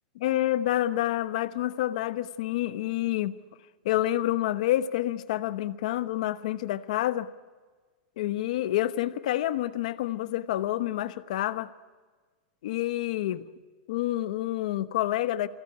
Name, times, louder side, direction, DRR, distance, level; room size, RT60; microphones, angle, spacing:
voice 1, 0.1-3.3 3.8-7.3 8.2-11.7 12.6-13.5 13.9-15.5, left 14 dB, 55° left, 12 dB, 1.0 m, -28 dB
24.0 x 16.5 x 9.7 m, 1.4 s
supercardioid pair, 175°, 5 cm